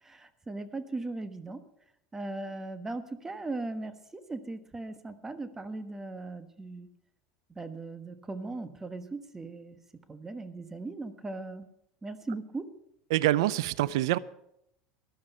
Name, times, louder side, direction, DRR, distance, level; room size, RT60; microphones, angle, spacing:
voice 1, 0.0-1.6 2.1-6.9 7.5-9.8 10.1-11.6 12.0-12.7, right 2 dB, 15° right, 1.3 m, -38 dB
voice 2, 13.1-14.2, right 15 dB, 80° right, 0.5 m, -25 dB
13.5 x 11.5 x 5.5 m
supercardioid pair, 105°, 3 cm